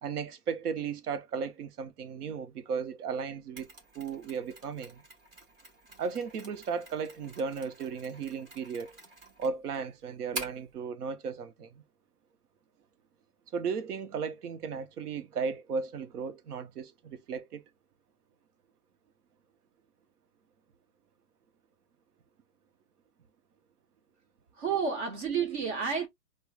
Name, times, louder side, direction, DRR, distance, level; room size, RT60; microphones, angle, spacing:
voice 1, 0.0-5.0 6.0-8.9 9.4-11.8 13.5-17.6, right 5 dB, 75° right, 0.9 m, -35 dB
Mechanisms, 3.6-10.7, right 1 dB, 15° right, 0.9 m, -47 dB
voice 2, 24.5-26.1, right 6 dB, 45° right, 0.9 m, -30 dB
4.6 x 2.3 x 2.3 m
hypercardioid pair, 155°, 46 cm